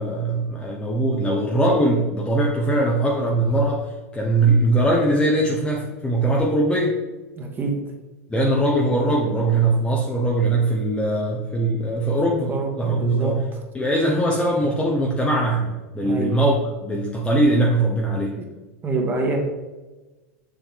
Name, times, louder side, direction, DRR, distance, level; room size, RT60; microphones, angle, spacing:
voice 1, 0.0-6.9 8.3-13.5 13.7-16.5 16.8-18.3, right 2 dB, 10° left, -2 dB, 1.1 m, -21 dB
voice 2, 7.4-7.7 12.5-13.3 16.0-16.3 18.8-19.4, right 2 dB, 25° right, 1 dB, 2.1 m, -25 dB
7.2 x 6.8 x 3.6 m, 1.2 s
hypercardioid pair, 100°, 8 cm